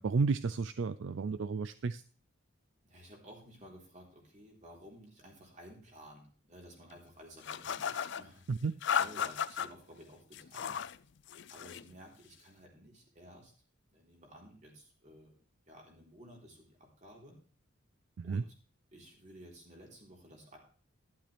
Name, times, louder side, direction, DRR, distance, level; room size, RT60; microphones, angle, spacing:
voice 1, 0.0-2.0 8.6-8.7 18.2-18.4, right 4 dB, 60° right, 15 dB, 0.4 m, -32 dB
voice 2, 2.8-8.5 9.0-10.8 11.5-13.5 13.9-15.4 15.7-17.4 18.2-18.5 18.9-20.6, equal, 35° right, -1 dB, 3.8 m, -54 dB
sound 1, 7.4-8.2 8.8-9.7 10.3-11.0 11.3-11.9, left 8 dB, 55° left, 0.4 m, -35 dB
11.5 x 11.5 x 3.4 m, 0.42 s
head